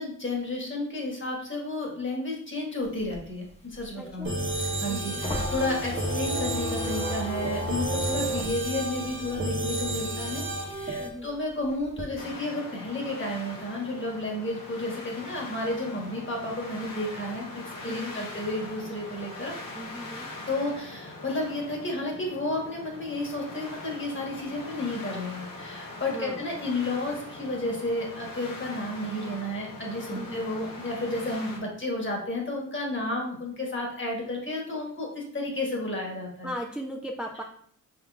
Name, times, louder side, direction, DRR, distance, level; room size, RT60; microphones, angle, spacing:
voice 1, 0.0-19.5 20.5-36.5, left 2 dB, 35° left, -1 dB, 1.5 m, -32 dB
sound 1, 2.8-9.9 10.3-12.0, equal, 20° left, 0.8 m, -34 dB
voice 2, 4.0-4.4 4.9-5.4 11.0-11.4 17.8-18.3 19.7-20.3 26.1-26.4 30.2-30.4 36.4-37.4, equal, 5° right, 1 dB, 0.4 m, -38 dB
sound 2, 4.2-11.1, right 2 dB, 40° right, 1.1 m, -32 dB
sound 3, 12.2-31.6, left 2 dB, 90° left, 1.1 m, -42 dB
5.6 x 3.7 x 2.3 m, 0.63 s
cardioid pair, 85°, 32 cm